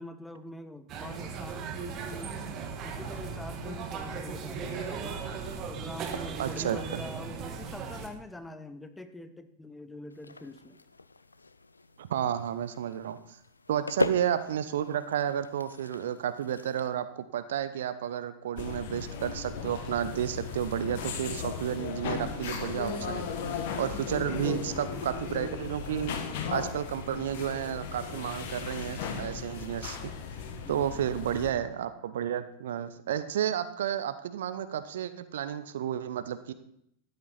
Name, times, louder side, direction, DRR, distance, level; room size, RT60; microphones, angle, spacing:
voice 1, 0.0-2.4 2.8-5.3 5.7-10.8 13.7-13.9 24.2-25.1 30.6-31.2, left 1 dB, 5° left, 10 dB, 0.8 m, -44 dB
sound 1, 0.9-8.1, right 5 dB, 35° right, 1.6 m, -37 dB
voice 2, 6.4-7.0 12.0-13.4 13.7-23.3 23.8-26.2 26.5-30.1 30.7-36.5, right 10 dB, 60° right, 13 dB, 0.7 m, -32 dB
sound 2, 10.1-16.9, left 3 dB, 80° left, 0.4 m, -39 dB
sound 3, 18.6-31.5, left 6 dB, 50° left, 1.3 m, -36 dB
13.0 x 8.5 x 4.1 m, 0.72 s
figure-of-eight pair, 90°, 0 cm